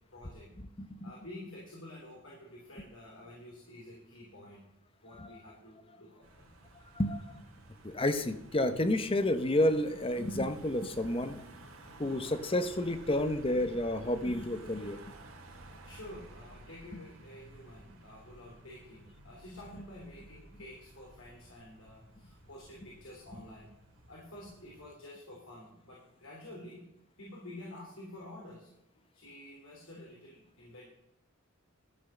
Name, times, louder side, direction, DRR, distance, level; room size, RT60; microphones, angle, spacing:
voice 1, 0.1-0.5 1.0-4.6 5.0-6.5 15.8-23.7 24.1-26.8 27.2-28.7 29.1-30.9, left 1 dB, 80° left, -4 dB, 3.3 m, -49 dB
Car passing by / Engine, 6.2-24.9, right 2 dB, 85° right, 2.1 m, -54 dB
voice 2, 7.8-11.4 12.0-15.0, left 1 dB, 25° left, 10 dB, 0.8 m, -30 dB
13.5 x 6.1 x 6.8 m, 0.83 s
head